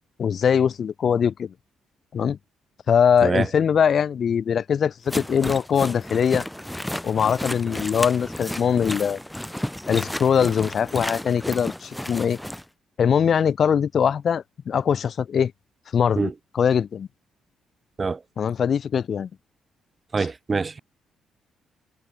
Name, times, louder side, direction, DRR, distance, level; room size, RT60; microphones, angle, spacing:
voice 1, 0.2-1.5 2.1-2.4 2.9-6.4 7.0-9.2 9.9-12.4 13.0-15.5 15.9-17.1 18.4-19.3, left 7 dB, 55° left, 0.8 m, -22 dB
sound 1, 5.1-12.6, left 1 dB, 5° left, 3.4 m, -32 dB
voice 2, 20.1-20.8, right 4 dB, 30° right, 1.5 m, -24 dB
cardioid pair, 90°, 0 cm